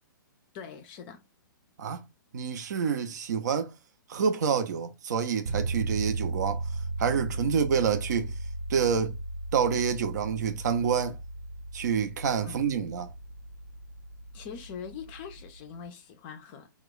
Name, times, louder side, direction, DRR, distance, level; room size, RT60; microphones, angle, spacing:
voice 1, 0.5-1.2 12.4-12.9 14.3-16.7, left 7 dB, 30° left, 0.4 m, -43 dB
voice 2, 2.3-3.7 4.1-6.6 7.0-8.3 8.7-9.1 9.5-11.2 11.7-13.1, right 7 dB, 55° right, 0.5 m, -27 dB
sound 1, 5.5-15.6, right 2 dB, 75° right, 0.9 m, -36 dB
2.2 x 2.1 x 3.7 m
figure-of-eight pair, 120°, 11 cm